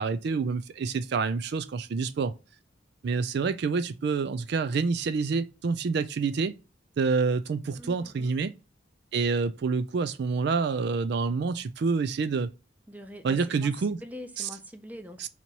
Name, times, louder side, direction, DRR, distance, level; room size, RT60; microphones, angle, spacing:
voice 1, 0.0-2.3 3.0-6.5 7.0-8.5 9.1-12.5 13.2-14.0 14.4-14.5 15.2-15.3, right 4 dB, 60° right, 0.4 m, -27 dB
voice 2, 7.8-8.3 12.9-15.3, equal, 10° right, 0.5 m, -44 dB
4.1 x 2.9 x 4.4 m
head